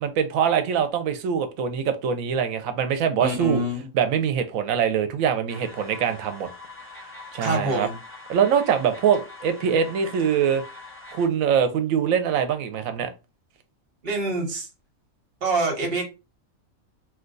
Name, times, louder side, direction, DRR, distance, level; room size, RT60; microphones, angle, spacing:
voice 1, 0.0-3.6 3.9-6.5 7.3-7.9 8.3-10.6 11.1-13.1, right 7 dB, 80° right, 1.0 m, -23 dB
voice 2, 3.2-3.9 7.4-7.9 14.0-14.7 15.4-16.0, right 2 dB, 50° right, 1.2 m, -25 dB
sound 1, 5.5-11.3, left 3 dB, 10° left, 0.8 m, -43 dB
2.8 x 2.2 x 3.8 m
omnidirectional pair, 1.4 m